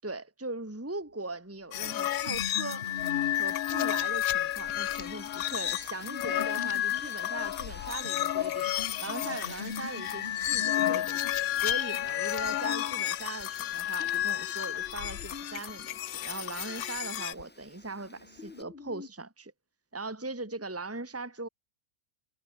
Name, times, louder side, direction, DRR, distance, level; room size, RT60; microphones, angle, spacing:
voice 1, 0.0-2.9 3.4-8.7 9.0-11.2 11.6-19.5 19.9-21.5, right 3 dB, 10° right, 2.0 m, -40 dB
sound 1, 1.3-1.4 1.7-2.0 2.2-3.6 3.9-4.0 4.2-4.3 4.8-8.3 8.6-11.4 11.8-12.6 13.4-13.5 14.0-19.1, left 5 dB, 45° left, 1.9 m, -45 dB
sound 2, 1.7-17.3, left 12 dB, 75° left, 1.1 m, -31 dB
Wind, 2.8-18.6, equal, 5° left, 5.0 m, -53 dB
omnidirectional pair, 1.5 m